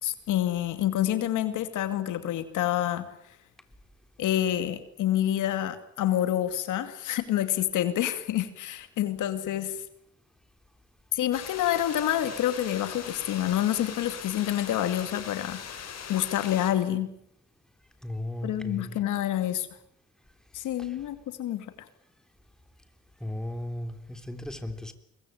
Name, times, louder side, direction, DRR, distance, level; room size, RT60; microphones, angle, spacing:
voice 1, 0.0-3.0 4.2-9.8 11.1-17.1 18.4-19.7 20.5-21.9, left 12 dB, 85° left, 10 dB, 2.4 m, -28 dB
sound 1, 11.3-16.7, left 7 dB, 55° left, 5.0 m, -41 dB
voice 2, 18.0-18.9 20.8-21.0 23.2-24.9, left 1 dB, ahead, 7 dB, 3.7 m, -36 dB
23.5 x 22.0 x 9.3 m, 0.74 s
cardioid pair, 90°, 30 cm